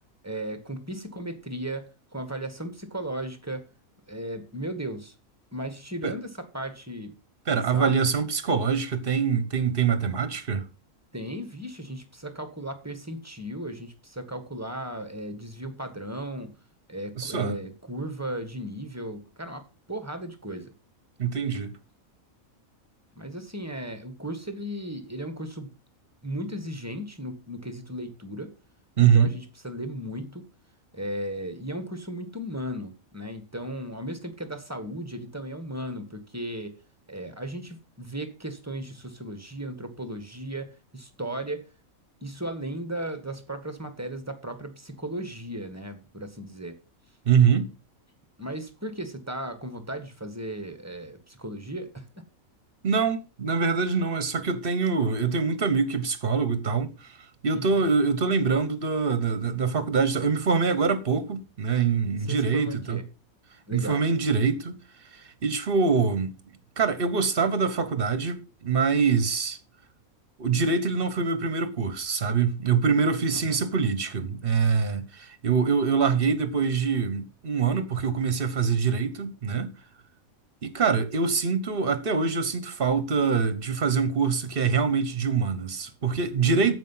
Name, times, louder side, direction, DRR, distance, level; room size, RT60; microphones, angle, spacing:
voice 1, 0.2-1.8 2.1-3.7 4.1-5.1 5.5-7.1 7.5-7.9 11.1-16.5 16.9-20.7 23.1-25.7 26.2-28.5 29.0-30.5 30.9-36.7 37.1-41.7 42.2-46.8 48.4-52.2 57.5-57.9 62.3-63.0 63.7-64.0 73.3-73.6 86.4-86.7, right 1 dB, 10° right, 1.5 m, -36 dB
voice 2, 7.5-10.6 17.2-17.6 21.2-21.8 29.0-29.3 47.3-47.7 52.8-56.9 57.4-63.0 63.7-64.8 65.4-66.3 66.8-69.6 70.4-79.7 80.6-86.7, right 5 dB, 45° right, 1.3 m, -24 dB
13.5 x 5.4 x 5.7 m
omnidirectional pair, 1.5 m